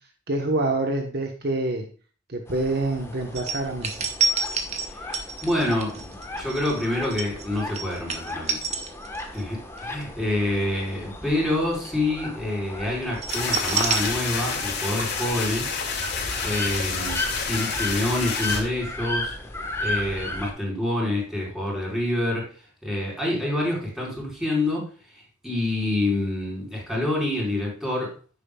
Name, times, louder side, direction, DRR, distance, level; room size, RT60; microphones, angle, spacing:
voice 1, 0.3-1.9 2.3-4.0, right 2 dB, 55° right, 3 dB, 1.1 m, -26 dB
sound 1, 2.5-20.5, left 2 dB, 15° left, 1.2 m, -35 dB
sound 2, 3.4-9.4 9.8-10.0 13.2-14.7 15.0-15.1, right 5 dB, 35° right, 1.3 m, -28 dB
voice 2, 5.4-8.6 9.3-15.7 16.4-19.4 19.8-22.4 22.8-24.9 25.4-28.1, left 1 dB, ahead, -5 dB, 4.6 m, -27 dB
sound 3, 13.3-18.6, left 5 dB, 60° left, 2.4 m, -29 dB
11.0 x 9.1 x 2.3 m, 0.37 s
head